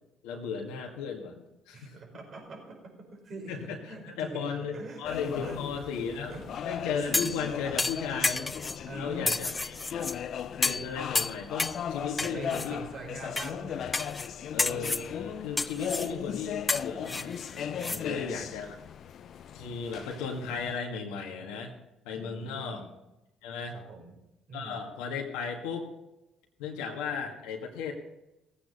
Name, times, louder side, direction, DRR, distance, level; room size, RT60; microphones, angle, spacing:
voice 1, 0.2-1.4 1.7-2.0 3.5-6.3 6.6-8.4 8.9-10.1 10.6-12.8 14.5-18.8 19.5-21.7 22.0-22.8 23.4-23.7 24.5-25.9 26.6-27.9, left 6 dB, 80° left, 1 dB, 1.8 m, -35 dB
voice 2, 1.7-3.5 3.8-4.5 4.7-5.0 5.4-5.6 6.3-6.4 7.1-7.3 8.9-9.3 12.2-13.9 14.7-14.9 17.9-18.6 22.2-22.9 23.7-24.1 24.5-24.8, right 3 dB, 55° right, 1 dB, 5.0 m, -43 dB
sound 1, 5.0-20.8, left 8 dB, 60° left, 0.7 m, -38 dB
sound 2, 7.1-7.4 7.8-8.8 9.3-10.2 10.6-10.9 11.2-11.8 12.2-12.7 13.4-13.5 13.9-14.3 14.6-15.1 15.6-16.1 16.7-18.0 18.4-18.5, left 3 dB, 25° left, 0.5 m, -30 dB
17.5 x 8.7 x 5.5 m, 0.94 s
hypercardioid pair, 55°, 0 cm